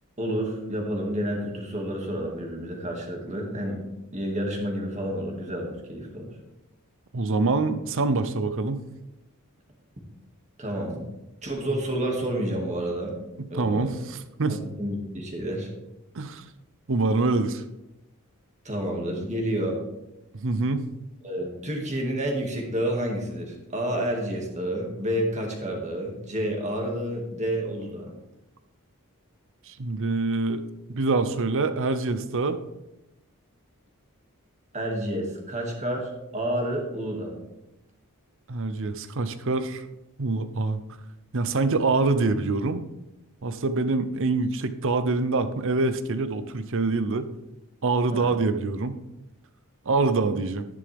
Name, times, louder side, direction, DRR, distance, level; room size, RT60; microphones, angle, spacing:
voice 1, 0.2-3.8 4.1-6.3 10.6-11.0 11.4-13.2 13.5-13.9 14.5-15.7 18.6-19.8 21.2-28.1 34.7-37.4 48.1-48.4, right 1 dB, 30° right, 1 dB, 2.1 m, -29 dB
voice 2, 7.1-8.9 13.4-14.6 16.1-16.4 16.9-17.6 20.4-20.9 29.7-30.6 30.9-32.6 38.5-39.8 40.2-40.8 41.3-42.9 43.4-47.3 47.8-49.0 49.9-50.6, right 3 dB, 60° right, 11 dB, 0.7 m, -25 dB
11.0 x 10.5 x 3.5 m, 0.94 s
head